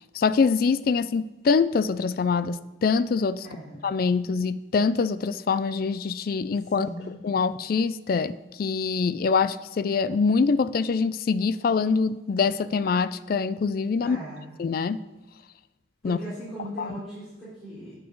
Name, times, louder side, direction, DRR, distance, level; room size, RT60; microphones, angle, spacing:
voice 1, 0.1-3.5 3.8-6.9 7.2-14.2 14.6-15.0 16.0-16.2 16.8-16.9, left 5 dB, 50° left, 15 dB, 0.3 m, -24 dB
voice 2, 3.4-3.8 6.7-7.1 14.0-14.5 16.0-17.9, right 1 dB, ahead, -13 dB, 3.5 m, -38 dB
8.9 x 8.3 x 3.9 m, 1.1 s
head